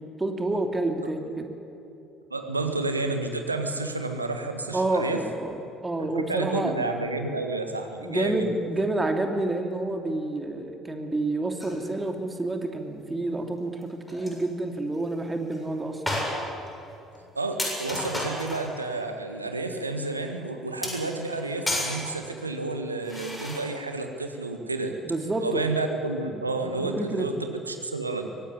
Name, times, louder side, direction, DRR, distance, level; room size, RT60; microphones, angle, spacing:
voice 1, 0.0-1.5 4.7-6.8 8.0-16.0 25.0-25.6 26.6-27.3, right 2 dB, 20° right, 5 dB, 2.9 m, -29 dB
voice 2, 2.3-5.2 6.1-8.5 17.3-25.0 25.4-28.3, right 3 dB, 85° right, 5 dB, 1.7 m, -30 dB
sound 1, 11.6-11.8 13.8-13.9 14.1-14.4 15.0-15.1 15.5-15.6 16.1-16.7 17.1-17.2 17.6-18.7 20.8-22.0 23.0-23.6, left 1 dB, 10° left, 7.2 m, -32 dB
23.5 x 18.5 x 9.7 m, 2.9 s
figure-of-eight pair, 55°, 0 cm